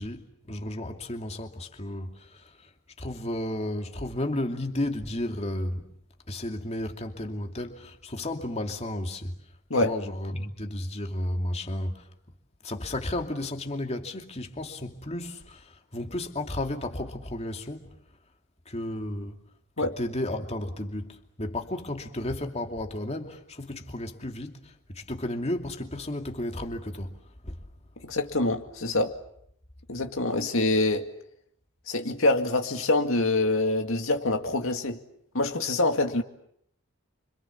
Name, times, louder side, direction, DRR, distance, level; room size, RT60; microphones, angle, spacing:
voice 1, 0.0-2.7 3.0-5.9 6.3-9.4 9.8-12.1 12.6-18.0 18.7-19.4 19.8-27.2 27.4-27.6, left 1 dB, 30° left, 2.6 m, -33 dB
voice 2, 28.0-29.1 29.9-31.1 31.9-35.0 35.3-36.2, left 2 dB, 65° left, 2.2 m, -25 dB
30.0 x 26.0 x 7.3 m
head